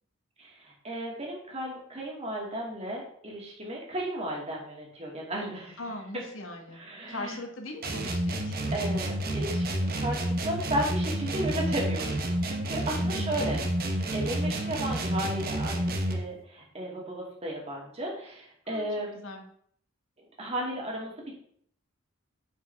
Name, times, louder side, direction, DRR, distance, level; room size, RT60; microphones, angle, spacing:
voice 1, 0.4-5.8 6.7-7.4 8.7-12.1 12.4-19.2 20.4-21.3, right 1 dB, 30° right, -2 dB, 2.3 m, -34 dB
voice 2, 5.8-6.8 7.1-8.8 13.0-13.5 18.7-18.9 19.1-19.4, left 2 dB, 70° left, 3 dB, 1.5 m, -40 dB
sound 1, 7.8-16.3, right 1 dB, 45° right, 1.0 m, -30 dB
9.6 x 5.3 x 3.5 m, 0.63 s
head